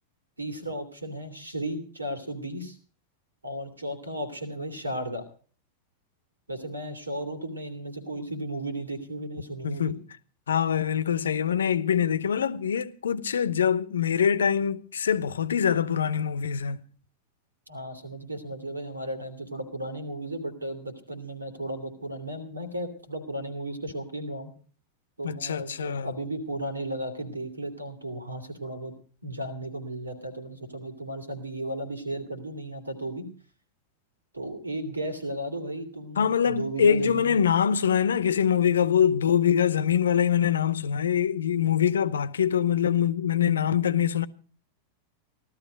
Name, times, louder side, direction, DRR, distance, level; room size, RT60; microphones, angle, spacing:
voice 1, 0.4-2.8 3.4-5.2 6.5-10.0 17.7-24.5 25.2-29.0 29.2-33.3 34.3-37.4, right 1 dB, 80° right, 2.9 m, -35 dB
voice 2, 9.6-10.0 10.5-16.8 25.2-26.1 36.2-44.3, left 8 dB, 65° left, 0.9 m, -24 dB
16.5 x 12.5 x 5.1 m
figure-of-eight pair, 90°, 0 cm